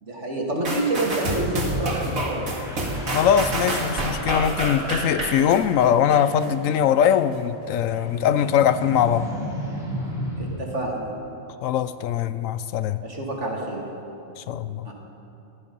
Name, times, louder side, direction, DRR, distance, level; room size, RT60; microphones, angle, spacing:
voice 1, 0.0-2.4 10.4-11.1 13.0-13.8 14.8-14.9, right 2 dB, 60° right, -1 dB, 2.6 m, -28 dB
sound 1, 0.6-6.5 7.0-7.1, right 1 dB, 80° right, 2.6 m, -28 dB
sound 2, 0.8-1.8 2.3-10.7, equal, ahead, 3.2 m, -36 dB
voice 2, 3.1-9.3 11.6-13.0 14.4-14.9, left 9 dB, 75° left, 13 dB, 0.9 m, -21 dB
18.5 x 13.5 x 5.4 m, 3.0 s
omnidirectional pair, 1.4 m